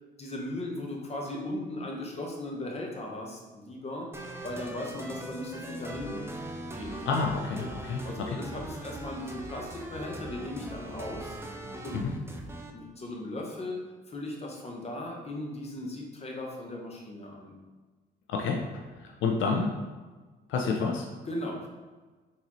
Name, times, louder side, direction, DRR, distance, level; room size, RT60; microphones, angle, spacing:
voice 1, 0.2-4.1 4.4-6.3 6.7-7.0 7.6-7.7 8.0-11.4 11.8-12.0 12.2-12.4 12.7-13.8 14.1-17.6 21.2-21.7, left 1 dB, 30° left, 0 dB, 0.8 m, -37 dB
sound 1, 4.1-12.7, right 1 dB, 10° right, 0.4 m, -40 dB
voice 2, 7.1-8.3 11.9-12.1 18.3-19.7 20.5-21.1, left 4 dB, 75° left, 2 dB, 0.4 m, -29 dB
3.9 x 2.7 x 2.9 m, 1.3 s
cardioid pair, 90°, 20 cm